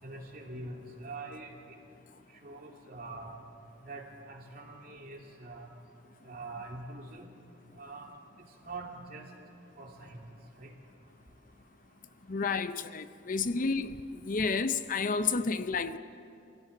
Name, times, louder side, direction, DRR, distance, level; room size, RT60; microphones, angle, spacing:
voice 1, 0.0-1.8 2.4-3.3 3.8-5.7 6.2-7.3 7.8-8.1 8.6-9.2 9.8-10.2 10.6-10.7, right 2 dB, 50° right, 2.9 m, -44 dB
voice 2, 12.3-14.0 14.2-16.0, left 4 dB, 45° left, 0.6 m, -30 dB
25.0 x 16.0 x 8.3 m
head